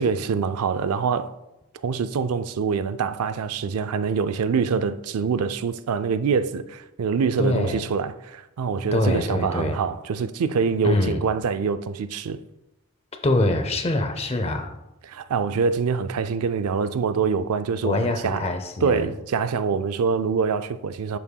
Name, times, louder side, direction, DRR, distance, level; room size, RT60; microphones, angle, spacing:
voice 1, 0.0-1.3 1.8-12.4 15.0-18.5 18.8-21.2, right 5 dB, 90° right, 0.4 m, -25 dB
voice 2, 7.4-7.8 8.9-9.8 10.8-11.2 13.2-14.7 17.8-19.1, left 1 dB, 25° left, 0.6 m, -24 dB
8.0 x 7.2 x 2.3 m
head